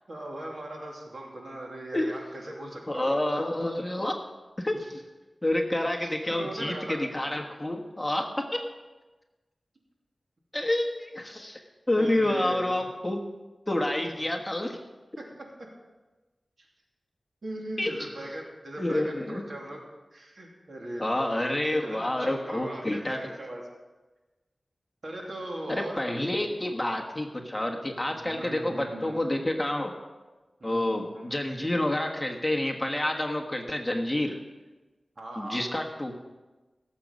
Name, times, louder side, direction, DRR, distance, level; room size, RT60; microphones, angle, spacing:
voice 1, 0.1-3.2 6.0-7.0 12.0-12.9 14.0-14.1 17.4-19.8 20.1-21.5 21.8-23.6 25.0-26.0 26.4-26.6 28.1-29.2 30.6-31.2 31.7-31.8 35.2-35.7, right 1 dB, 65° right, -1 dB, 2.9 m, -39 dB
voice 2, 2.9-4.1 4.6-4.8 5.4-8.3 10.5-11.6 11.9-13.3 13.7-14.8 17.8-17.9 18.8-19.4 21.0-23.2 25.7-29.9 30.6-34.4 35.4-36.1, left 1 dB, 15° left, 2 dB, 1.5 m, -28 dB
17.5 x 7.6 x 5.4 m, 1.2 s
wide cardioid pair, 75°, 0 cm